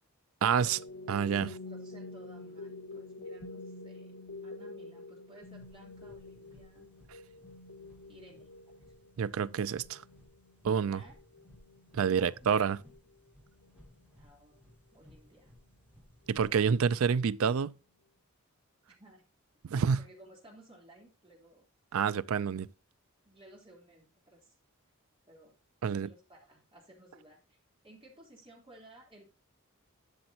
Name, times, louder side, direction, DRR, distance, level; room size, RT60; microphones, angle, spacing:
voice 1, 0.4-0.8 1.1-1.5 9.2-10.0 10.6-11.0 11.9-12.8 16.3-17.8 19.6-20.0 21.9-22.7 25.8-26.1, right 6 dB, 70° right, 0.4 m, -28 dB
sound 1, 0.6-14.0, left 2 dB, 80° left, 2.2 m, -48 dB
voice 2, 1.3-6.9 8.1-8.5 10.9-11.1 12.1-12.9 14.2-14.6 14.9-15.5 19.0-19.2 20.0-21.7 23.2-24.5 25.3-25.5 26.0-29.2, right 1 dB, 25° right, 3.6 m, -57 dB
sound 2, 5.4-17.0, left 1 dB, 5° right, 2.8 m, -60 dB
12.0 x 6.9 x 2.9 m
head